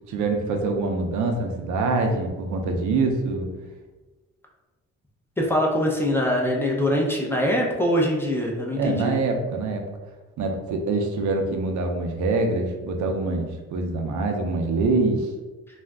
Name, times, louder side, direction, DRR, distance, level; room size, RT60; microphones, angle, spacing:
voice 1, 0.1-3.5 8.8-9.8 10.4-15.3, right 3 dB, 75° right, 3 dB, 0.5 m, -25 dB
voice 2, 5.4-9.1, left 1 dB, 10° left, -2 dB, 0.5 m, -23 dB
2.4 x 2.1 x 3.4 m, 1.2 s
cardioid pair, 90°, 30 cm